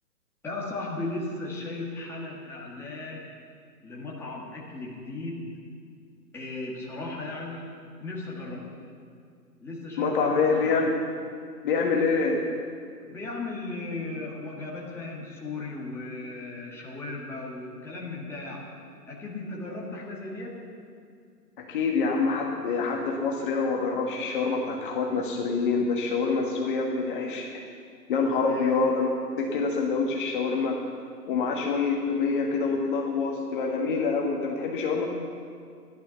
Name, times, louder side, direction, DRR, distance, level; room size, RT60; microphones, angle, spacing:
voice 1, 0.4-3.2 3.8-5.5 6.3-7.7 8.0-8.7 9.6-10.7 13.0-18.7 19.1-20.6 28.5-28.8, left 2 dB, 5° left, -5 dB, 1.9 m, -36 dB
voice 2, 10.0-11.0 11.6-12.5 21.6-27.5 28.1-29.1 29.4-30.8 31.3-35.0, left 4 dB, 30° left, 0 dB, 1.6 m, -26 dB
15.0 x 11.5 x 7.1 m, 2.2 s
figure-of-eight pair, 135°, 49 cm